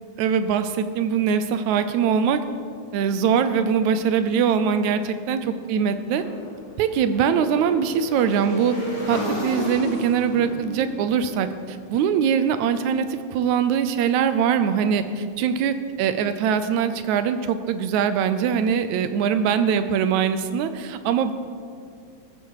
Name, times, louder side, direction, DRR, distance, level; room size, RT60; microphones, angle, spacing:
voice 1, 0.2-2.4 2.9-6.2 6.8-8.8 9.1-21.3, right 7 dB, 75° right, 11 dB, 1.9 m, -22 dB
Motorcycle / Engine, 6.2-12.3, left 1 dB, 35° left, 5.1 m, -33 dB
16.0 x 13.5 x 4.8 m, 2.3 s
omnidirectional pair, 3.7 m